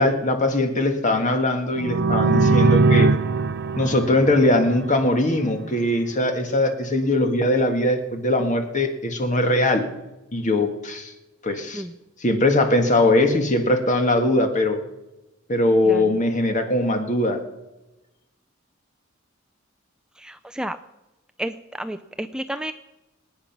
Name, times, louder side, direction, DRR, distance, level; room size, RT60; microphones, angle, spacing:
voice 1, 0.0-3.1 3.8-9.9 10.3-11.1 11.4-11.8 12.2-14.8 15.5-17.4, left 1 dB, 40° left, 5 dB, 1.8 m, -21 dB
sound 1, 1.8-5.5, right 3 dB, 55° right, 0.6 m, -21 dB
voice 2, 15.8-16.2 20.2-20.8 21.4-22.7, right 1 dB, 5° right, 9 dB, 0.4 m, -31 dB
25.5 x 9.4 x 5.9 m, 1.0 s
head